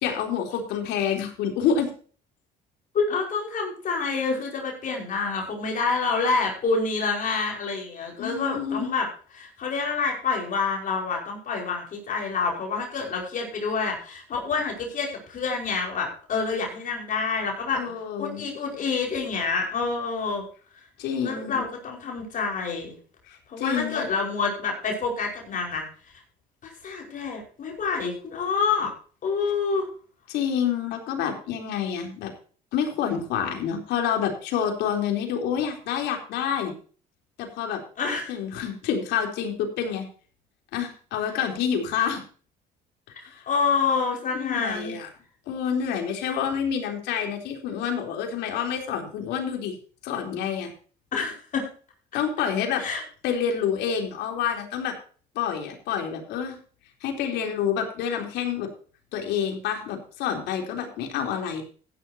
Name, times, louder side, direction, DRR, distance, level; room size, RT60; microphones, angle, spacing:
voice 1, 0.0-1.9 8.2-8.9 17.8-18.5 21.0-21.7 23.3-24.1 30.3-32.3 32.7-36.7 37.4-37.8 38.3-40.1 40.7-42.2 43.2-43.4 44.3-45.1 45.5-49.7 50.0-50.7 52.1-52.9 53.2-55.0 55.4-56.6 57.0-58.7 59.1-61.6, left 8 dB, 85° left, 3 dB, 3.8 m, -28 dB
voice 2, 2.9-9.1 9.3-17.8 18.2-20.4 21.2-23.0 23.5-25.8 26.6-28.9 29.2-29.9 38.0-38.3 43.5-45.0 46.3-46.4 51.1-51.7 52.8-53.0, left 4 dB, 50° left, 0 dB, 5.3 m, -27 dB
15.0 x 11.0 x 2.9 m, 0.41 s
cardioid pair, 110°, 17 cm